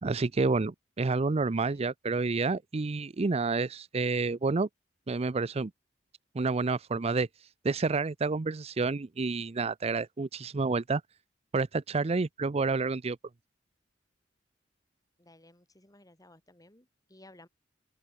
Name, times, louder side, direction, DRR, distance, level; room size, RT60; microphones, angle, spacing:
voice 1, 0.0-4.7 5.1-5.7 6.3-7.3 7.6-11.0 11.5-13.2, right 3 dB, 35° right, 0.5 m, -29 dB
voice 2, 15.2-17.5, left 1 dB, 20° left, 6.6 m, -57 dB
open air
head